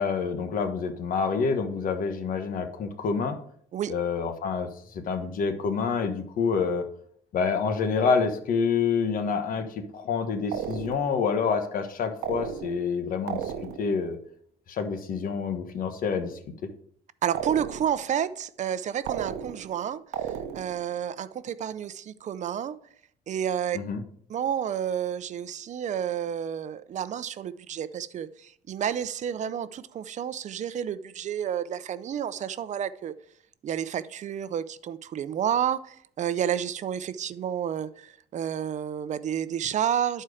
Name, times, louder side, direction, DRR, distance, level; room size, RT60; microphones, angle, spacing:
voice 1, 0.0-3.4 3.9-6.8 7.3-13.5 13.8-14.2 14.7-16.4 23.7-24.0, left 5 dB, 55° left, 1.3 m, -27 dB
sound 1, 10.5-11.2 12.2-12.9 13.3-14.0 17.3-18.1 19.1-19.8 20.1-20.9, right 9 dB, 80° right, 0.8 m, -34 dB
voice 2, 17.2-22.8 23.3-23.8 24.3-33.1 33.6-40.2, right 9 dB, 45° right, 0.6 m, -30 dB
11.0 x 4.5 x 4.9 m
cardioid pair, 110°, 17 cm